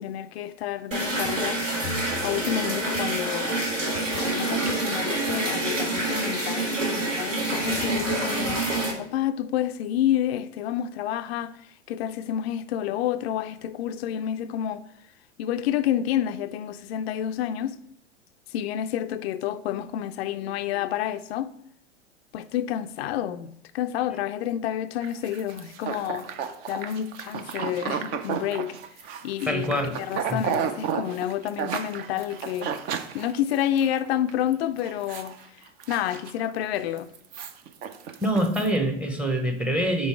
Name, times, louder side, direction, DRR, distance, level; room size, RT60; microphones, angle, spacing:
voice 1, 0.0-1.6 2.2-3.5 4.2-8.7 9.0-11.6 11.9-14.9 15.4-17.8 18.5-21.5 22.3-26.3 26.7-28.8 29.2-32.8 33.1-35.4 35.9-37.1, left 11 dB, 55° left, 0.4 m, -29 dB
sound 1, 0.9-8.9, right 2 dB, 85° right, 1.7 m, -27 dB
sound 2, 25.0-33.9 34.3-34.5 34.8-35.3 35.7-36.6 37.0-38.7, right 8 dB, 25° right, 0.4 m, -33 dB
voice 2, 29.5-30.0 30.3-30.4 38.2-40.1, right 1 dB, 5° right, 0.8 m, -25 dB
5.3 x 4.1 x 4.6 m
figure-of-eight pair, 95°, 37 cm